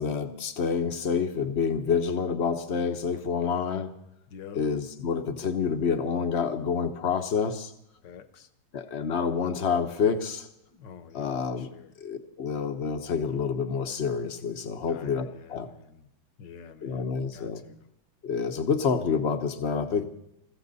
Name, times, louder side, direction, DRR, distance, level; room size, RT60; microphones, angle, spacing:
voice 1, 0.0-3.9 4.5-7.7 8.7-10.5 11.1-11.7 12.0-15.7 16.8-17.6 18.2-20.0, left 6 dB, 45° left, 9 dB, 0.9 m, -28 dB
voice 2, 4.3-4.6 8.0-8.5 10.7-11.9 14.9-16.1 16.4-17.9, left 7 dB, 65° left, 12 dB, 1.6 m, -48 dB
20.5 x 15.0 x 4.1 m, 0.80 s
omnidirectional pair, 2.2 m